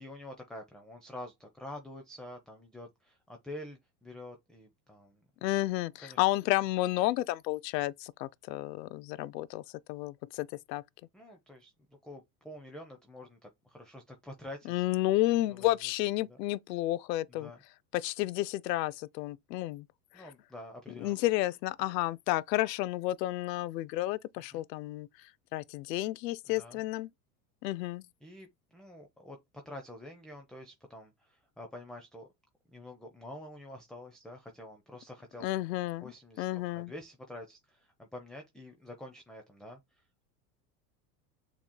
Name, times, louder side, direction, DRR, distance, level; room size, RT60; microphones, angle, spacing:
voice 1, 0.0-5.3 6.0-6.2 11.1-14.9 15.5-15.7 16.3-16.4 17.3-17.6 20.1-21.1 24.5-24.7 26.5-26.8 28.2-29.4 29.6-32.3 32.7-35.7 36.0-40.3, left 1 dB, ahead, 0.6 m, -47 dB
voice 2, 5.4-9.6 9.9-10.8 14.7-17.5 17.9-19.8 21.0-25.1 25.5-27.1 27.6-28.0 35.4-36.1 36.4-36.9, left 17 dB, 80° left, 0.5 m, -31 dB
6.9 x 3.1 x 2.2 m
hypercardioid pair, 100°, 49 cm